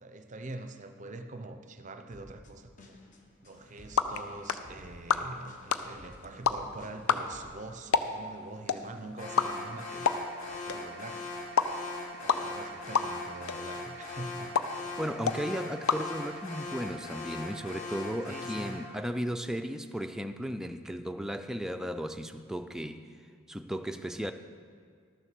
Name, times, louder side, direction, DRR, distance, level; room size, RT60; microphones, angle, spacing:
voice 1, 0.0-3.0 3.4-10.1 10.4-11.3 12.2-14.6 18.3-18.9, right 2 dB, 35° right, 0.6 m, -44 dB
sound 1, 2.1-7.5, left 1 dB, 35° left, 1.1 m, -54 dB
sound 2, 3.5-16.8, left 5 dB, 85° left, 0.6 m, -33 dB
Alarm, 9.2-18.9, left 3 dB, 70° left, 3.2 m, -40 dB
voice 2, 15.0-23.1 23.5-24.3, equal, ahead, 0.3 m, -35 dB
12.5 x 7.1 x 6.7 m
head